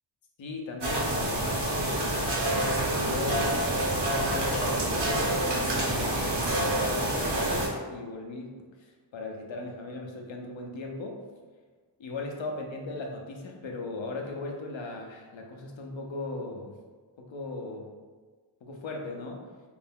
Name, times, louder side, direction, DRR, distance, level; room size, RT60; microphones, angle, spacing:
voice 1, 0.4-2.2 3.0-11.2 12.0-16.8 17.2-17.9 18.6-19.5, left 2 dB, 80° left, 1 dB, 0.6 m, -38 dB
sound 1, 0.8-7.7, right 1 dB, 65° right, 0.8 m, -27 dB
2.5 x 2.1 x 3.5 m, 1.4 s
wide cardioid pair, 45°, 45 cm